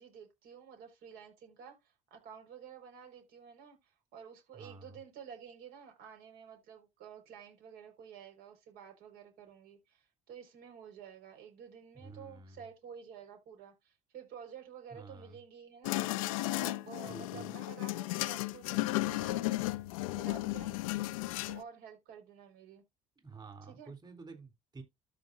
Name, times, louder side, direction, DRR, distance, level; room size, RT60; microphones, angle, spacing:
voice 1, 0.0-19.6 20.0-20.8 21.4-22.8 23.6-23.9, right 7 dB, 70° right, 4.8 m, -51 dB
voice 2, 4.5-5.0 11.9-12.6 14.9-15.4 17.0-17.5 23.2-24.8, right 4 dB, 25° right, 3.7 m, -50 dB
sound 1, 15.8-21.6, left 18 dB, 90° left, 0.6 m, -34 dB
13.0 x 5.1 x 2.7 m
supercardioid pair, 75°, 17 cm